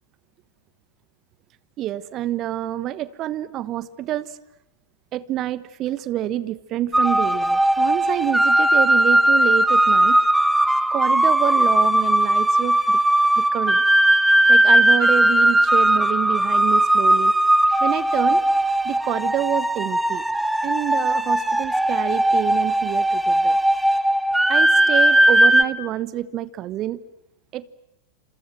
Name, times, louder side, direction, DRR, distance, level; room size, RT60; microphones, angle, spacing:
voice 1, 1.8-4.4 5.1-10.2 10.9-13.0 13.4-13.8 14.5-17.3 17.8-18.4 18.8-20.2 20.6-23.6 24.5-27.0 27.5-27.7, right 12 dB, 35° right, 18 dB, 1.1 m, -27 dB
sound 1, 6.9-25.6, right 1 dB, 5° right, 1.3 m, -18 dB
28.5 x 27.0 x 7.7 m, 0.82 s
figure-of-eight pair, 90°, 0 cm